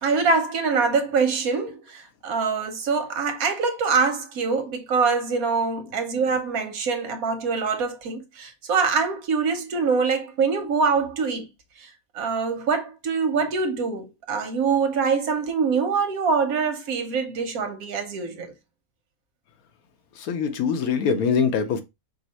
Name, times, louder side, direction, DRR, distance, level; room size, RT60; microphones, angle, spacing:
voice 1, 0.0-11.5 11.8-18.5, right 5 dB, 80° right, 1.4 m, -24 dB
voice 2, 20.2-21.8, left 6 dB, 85° left, 1.2 m, -23 dB
5.3 x 2.0 x 4.1 m
omnidirectional pair, 1.5 m